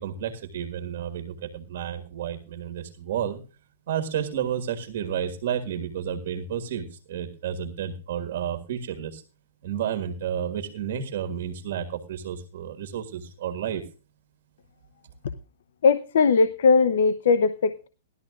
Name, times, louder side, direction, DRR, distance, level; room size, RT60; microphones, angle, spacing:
voice 1, 0.0-3.4 3.9-9.2 9.6-13.8, right 9 dB, 55° right, 6 dB, 1.6 m, -31 dB
voice 2, 15.8-17.9, left 5 dB, 70° left, 14 dB, 0.7 m, -20 dB
18.5 x 12.5 x 2.4 m, 0.33 s
hypercardioid pair, 165°, 0 cm